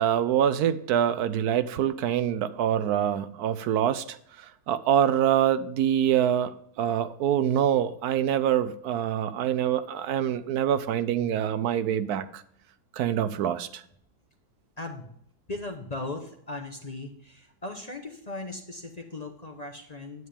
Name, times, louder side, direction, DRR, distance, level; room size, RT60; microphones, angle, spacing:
voice 1, 0.0-12.4 12.9-13.8, right 10 dB, 75° right, 13 dB, 1.1 m, -25 dB
voice 2, 14.8-15.1 15.5-20.3, left 2 dB, 30° left, 4 dB, 1.0 m, -38 dB
9.4 x 9.3 x 3.5 m, 0.67 s
omnidirectional pair, 1.7 m